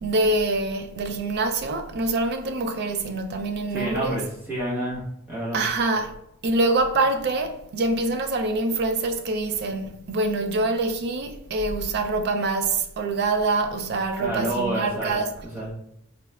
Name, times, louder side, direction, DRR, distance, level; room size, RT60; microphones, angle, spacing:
voice 1, 0.0-4.2 5.5-6.1 6.4-15.3, right 2 dB, 50° right, 0.3 m, -25 dB
voice 2, 3.7-5.0 5.3-5.6 14.2-15.1 15.5-15.7, right 1 dB, 10° right, 1.1 m, -28 dB
3.7 x 2.1 x 2.2 m
head